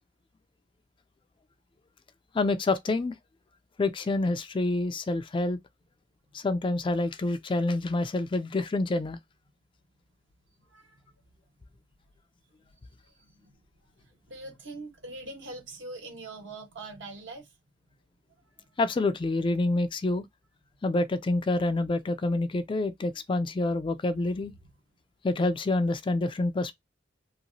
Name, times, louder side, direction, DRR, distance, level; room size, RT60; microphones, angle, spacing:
voice 1, 2.3-3.1 3.8-5.6 6.3-9.2 18.8-20.2 20.8-24.5 25.2-26.7, left 2 dB, 25° left, 0.4 m, -27 dB
voice 2, 10.7-11.0 12.7-13.6 14.0-17.6 18.6-18.7, right 2 dB, 70° right, 1.5 m, -43 dB
2.9 x 2.8 x 2.7 m
head